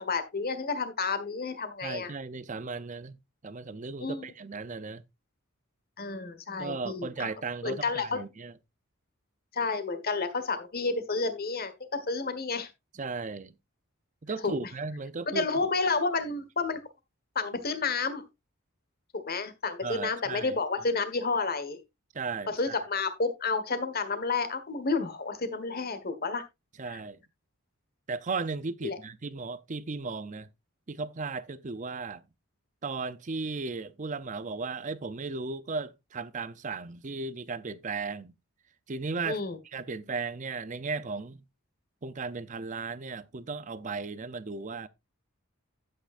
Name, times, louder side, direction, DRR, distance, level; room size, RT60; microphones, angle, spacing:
voice 1, 0.0-2.1 4.0-4.3 6.0-7.3 7.6-8.2 9.5-12.7 14.4-14.7 15.3-16.8 17.3-18.2 19.1-21.8 22.5-26.4 26.9-27.0 28.8-29.0 39.2-39.6, left 4 dB, 45° left, 1.4 m, -30 dB
voice 2, 1.8-3.2 3.4-5.0 6.6-8.5 12.9-13.5 14.2-15.7 19.8-20.5 22.1-22.8 26.8-27.2 28.1-30.5 30.9-32.2 32.8-38.3 38.9-39.4 39.7-41.4 42.0-44.9, right 4 dB, 35° right, 0.5 m, -36 dB
11.5 x 8.7 x 2.5 m
head